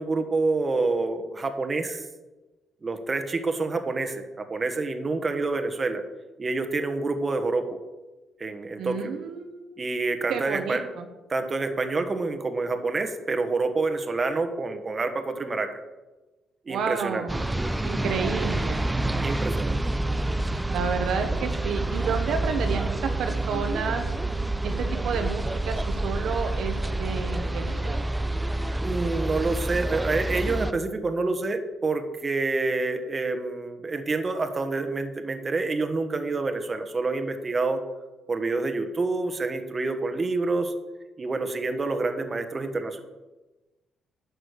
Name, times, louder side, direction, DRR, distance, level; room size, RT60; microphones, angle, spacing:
voice 1, 0.0-2.0 2.8-6.0 6.4-7.8 8.4-9.1 9.8-10.8 11.3-15.8 16.7-17.3 19.2-19.8 20.5-20.6 28.8-37.8 38.3-40.7 41.2-43.0, right 3 dB, 30° right, 7 dB, 1.3 m, -27 dB
voice 2, 8.8-9.7 10.3-11.1 16.7-17.4 17.8-18.8 20.7-24.0 24.6-28.0, right 6 dB, 75° right, 5 dB, 1.1 m, -30 dB
sound 1, 17.3-30.7, right 2 dB, 10° right, 0.5 m, -28 dB
10.0 x 6.3 x 6.5 m, 1.1 s
cardioid pair, 90°, 0 cm